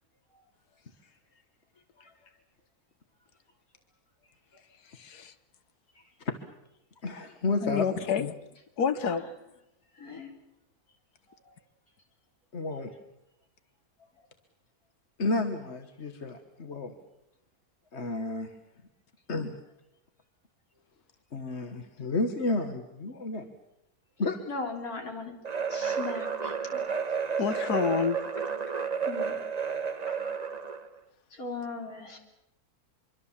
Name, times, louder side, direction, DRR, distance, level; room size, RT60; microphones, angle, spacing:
voice 1, 4.9-5.3 7.6-8.3 8.8-9.3 27.4-28.2, left 7 dB, 85° left, 1.7 m, -28 dB
voice 2, 7.0-7.8 12.5-12.9 15.2-16.9 17.9-18.5 19.3-19.6 21.3-23.5 24.2-24.4, left 3 dB, 45° left, 1.7 m, -31 dB
voice 3, 10.0-10.3 11.5-11.6 24.5-25.4 25.7-27.0 29.1-29.4 30.1-30.2 31.3-32.2, left 4 dB, 70° left, 3.9 m, -38 dB
sound 1, 25.4-30.9, right 6 dB, 30° right, 1.0 m, -31 dB
25.0 x 24.0 x 7.4 m
omnidirectional pair, 1.6 m